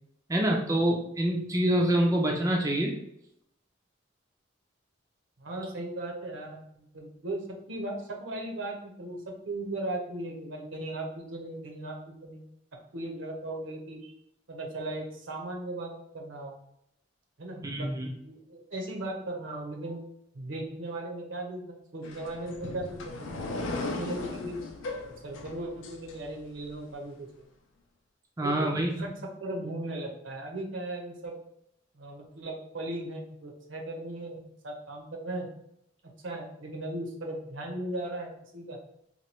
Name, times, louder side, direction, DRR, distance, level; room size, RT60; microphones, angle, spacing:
voice 1, 0.3-2.9 17.6-18.1 28.4-29.1, right 1 dB, 15° right, 0 dB, 0.4 m, -26 dB
voice 2, 5.4-12.4 12.9-14.1 14.5-16.6 17.4-17.9 18.2-20.0 20.3-24.6 25.2-27.3 28.4-28.8 29.0-29.1 29.4-31.4 31.9-35.5 36.2-38.8, right 1 dB, 70° right, 1 dB, 0.8 m, -37 dB
sound 1, 22.0-26.7, left 2 dB, 85° left, 0.5 m, -37 dB
2.9 x 2.2 x 4.1 m, 0.76 s
head